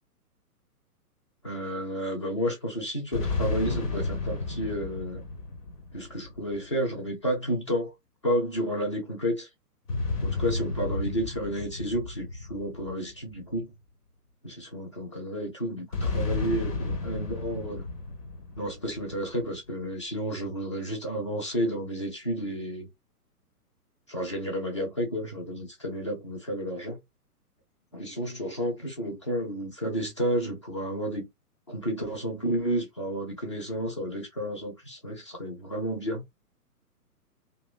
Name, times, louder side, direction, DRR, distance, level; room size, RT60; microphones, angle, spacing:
voice 1, 1.4-5.2 5.9-7.9 8.2-9.5 10.2-13.7 14.4-17.9 18.6-22.9 24.1-27.0 27.9-31.3 31.7-36.2, equal, 20° left, 0.4 m, -31 dB
sound 1, 3.1-6.8 9.9-13.6 15.9-19.4, left 3 dB, 75° left, 1.3 m, -32 dB
2.8 x 2.1 x 2.3 m
figure-of-eight pair, 125°, 47 cm